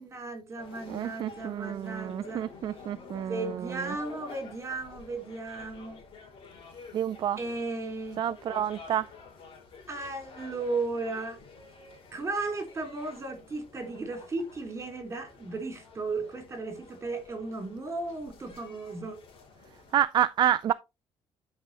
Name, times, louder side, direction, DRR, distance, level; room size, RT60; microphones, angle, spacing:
voice 1, 0.0-2.4 3.1-6.0 7.4-8.2 9.9-11.4 12.1-19.2, right 3 dB, 25° right, 3.3 m, -35 dB
sound 1, 0.6-20.0, left 4 dB, 55° left, 3.0 m, -50 dB
voice 2, 0.9-3.6 6.9-7.4 8.2-9.1 19.9-20.7, right 10 dB, 45° right, 0.4 m, -28 dB
12.0 x 5.0 x 2.9 m
cardioid pair, 125°, 11 cm